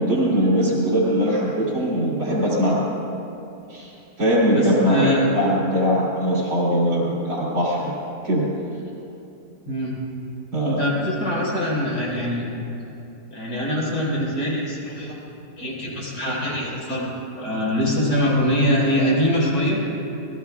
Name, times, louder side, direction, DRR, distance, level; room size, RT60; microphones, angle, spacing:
voice 1, 0.0-2.8 3.7-3.9 4.2-7.9 8.2-8.4 10.5-10.8, equal, 70° right, -6 dB, 4.0 m, -21 dB
voice 2, 4.5-5.3 9.7-10.0 10.6-12.5 13.3-15.1 15.6-17.1 17.4-19.8, equal, 75° left, -5 dB, 5.5 m, -23 dB
27.5 x 19.5 x 2.4 m, 2.8 s
omnidirectional pair, 1.8 m